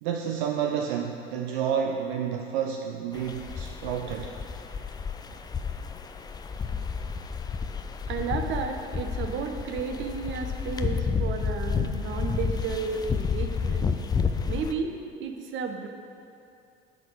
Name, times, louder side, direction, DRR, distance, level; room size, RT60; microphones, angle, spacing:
voice 1, 0.0-4.3, right 8 dB, 60° right, 3 dB, 0.5 m, -30 dB
sound 1, 3.1-14.7, left 5 dB, 15° left, 0.3 m, -31 dB
voice 2, 8.1-13.9 14.5-15.9, right 5 dB, 40° right, 5 dB, 0.8 m, -33 dB
8.3 x 4.3 x 6.3 m, 2.5 s
figure-of-eight pair, 65°, 29 cm